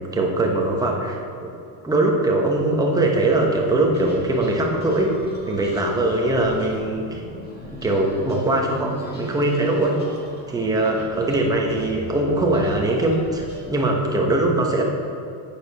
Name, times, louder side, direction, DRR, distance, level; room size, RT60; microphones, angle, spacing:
voice 1, 0.1-1.5 1.8-5.1 5.5-7.2 7.7-10.0 10.5-14.8, right 2 dB, 10° right, 0 dB, 1.0 m, -21 dB
sound 1, 3.4-13.6, equal, 25° left, 1.8 m, -40 dB
9.4 x 6.9 x 5.4 m, 2.6 s
cardioid pair, 165°, 42 cm